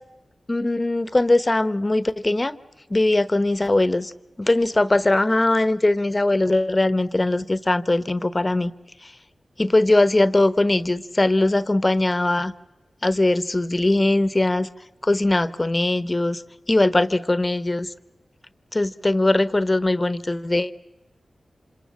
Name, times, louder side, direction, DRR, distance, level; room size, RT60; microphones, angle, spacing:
voice 1, 0.5-2.6 2.9-4.1 4.4-8.7 9.0-9.1 9.6-12.5 13.0-14.7 15.0-16.4 16.7-17.9 18.7-20.7, left 2 dB, 30° left, 14 dB, 1.1 m, -20 dB
26.5 x 26.5 x 7.3 m, 1.0 s
cardioid pair, 40°, 0 cm